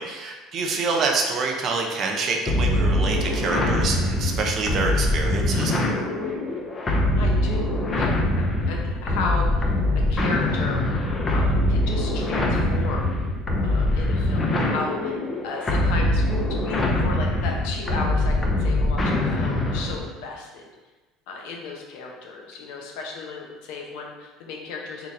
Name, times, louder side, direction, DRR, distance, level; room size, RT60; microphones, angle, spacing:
voice 1, 0.0-5.7, right 4 dB, 50° right, 1 dB, 0.7 m, -26 dB
sound 1, 2.5-20.1, left 1 dB, 30° left, 0.7 m, -23 dB
voice 2, 7.2-10.9 11.3-13.1 13.6-20.7 21.3-25.1, left 3 dB, 75° left, 0 dB, 0.8 m, -34 dB
3.8 x 2.4 x 4.2 m, 1.2 s
supercardioid pair, 95°, 0 cm